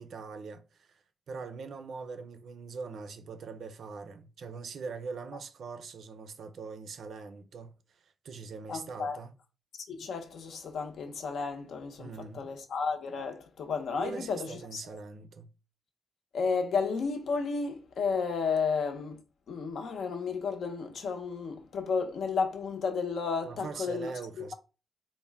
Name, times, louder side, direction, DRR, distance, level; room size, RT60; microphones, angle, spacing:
voice 1, 0.0-9.3 12.0-12.5 14.0-15.5 23.5-24.5, right 4 dB, 55° right, 0.5 m, -42 dB
voice 2, 8.7-9.2 9.9-14.5 14.7-14.8 16.3-19.2 19.5-24.1, left 5 dB, 65° left, 0.7 m, -32 dB
4.1 x 2.1 x 3.4 m
wide cardioid pair, 175°, 0 cm